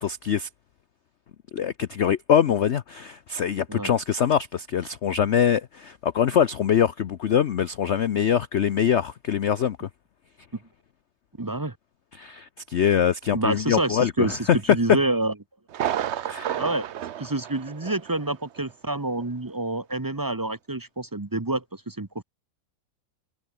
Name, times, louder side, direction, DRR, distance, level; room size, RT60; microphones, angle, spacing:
voice 1, 0.0-0.5 1.5-9.9 12.1-14.6 16.3-16.6, left 8 dB, 65° left, 0.6 m, -23 dB
voice 2, 11.4-11.7 13.3-15.3 16.6-16.8 17.2-22.2, right 2 dB, 20° right, 0.6 m, -28 dB
Thunder, 15.7-18.3 18.6-18.7 19.2-19.3, right 10 dB, 85° right, 0.6 m, -31 dB
omnidirectional pair, 2.1 m